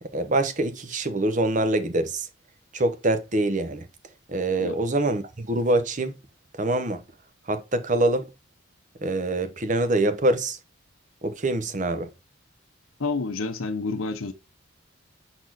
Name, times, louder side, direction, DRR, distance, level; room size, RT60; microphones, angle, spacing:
voice 1, 0.0-2.3 2.7-3.9 4.3-6.2 6.6-7.0 7.5-8.3 9.0-10.6 11.2-12.1, right 2 dB, 35° right, 0.8 m, -25 dB
voice 2, 13.0-14.3, left 3 dB, 80° left, 0.8 m, -29 dB
6.1 x 4.2 x 3.9 m
head